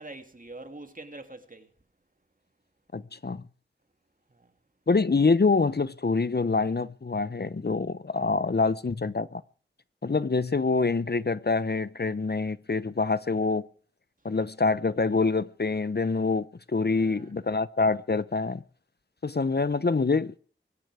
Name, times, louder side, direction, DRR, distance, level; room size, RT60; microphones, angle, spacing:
voice 1, 0.0-1.7 4.3-4.5 16.9-17.3, right 2 dB, 40° right, 2.6 m, -44 dB
voice 2, 2.9-3.4 4.9-9.4 10.0-13.6 14.2-18.6 19.2-20.4, left 4 dB, 55° left, 0.8 m, -26 dB
23.0 x 12.5 x 4.9 m
wide cardioid pair, 55°, 21 cm